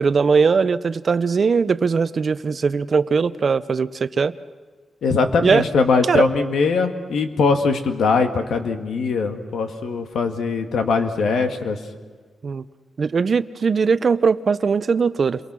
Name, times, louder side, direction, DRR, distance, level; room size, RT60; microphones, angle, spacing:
voice 1, 0.0-4.3 5.4-5.6 6.1-6.2 12.4-12.6 13.0-15.4, right 5 dB, 45° right, 14 dB, 0.7 m, -19 dB
voice 2, 5.0-11.8, left 4 dB, 85° left, 6 dB, 1.9 m, -21 dB
29.5 x 23.0 x 6.2 m, 1.5 s
wide cardioid pair, 115°, 0 cm